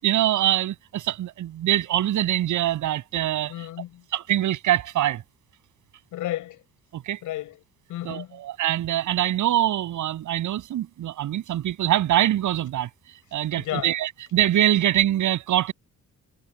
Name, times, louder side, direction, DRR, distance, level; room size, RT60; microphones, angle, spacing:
voice 1, 0.0-3.5 4.1-5.2 6.9-7.2 8.0-12.9 13.3-15.7, right 12 dB, 75° right, 7.7 m, -24 dB
voice 2, 3.5-4.0 6.1-6.6 7.2-7.6 7.9-8.4 13.6-13.9, left 14 dB, 85° left, 7.5 m, -32 dB
cardioid pair, 90°, 30 cm